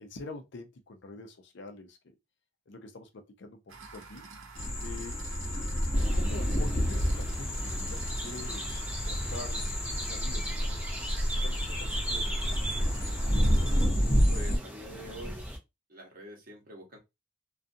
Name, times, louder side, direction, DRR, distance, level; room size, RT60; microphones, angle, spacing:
voice 1, 0.0-2.0 2.7-4.2 4.8-5.2 6.1-11.0 11.4-13.3, left 3 dB, 65° left, 0.5 m, -46 dB
sound 1, 3.7-13.9, right 4 dB, 90° right, 0.7 m, -48 dB
sound 2, 4.6-14.6, equal, 30° left, 0.8 m, -29 dB
sound 3, 5.9-15.6, right 1 dB, 10° right, 0.5 m, -40 dB
voice 2, 14.3-15.5 15.9-17.0, equal, 50° right, 0.9 m, -45 dB
2.4 x 2.3 x 2.6 m
head